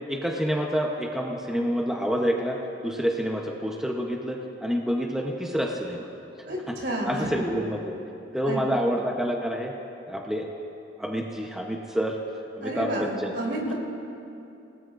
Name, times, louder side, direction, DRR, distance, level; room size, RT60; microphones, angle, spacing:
voice 1, 0.1-6.1 6.7-6.8 7.0-7.9 8.3-9.7 10.1-10.5 11.0-12.2 12.6-13.3 13.7-13.8, equal, 5° right, 0 dB, 0.9 m, -28 dB
voice 2, 6.5-7.4 8.4-8.6 12.6-13.7, right 1 dB, 65° right, -2 dB, 3.6 m, -30 dB
29.0 x 19.0 x 2.6 m, 2.8 s
head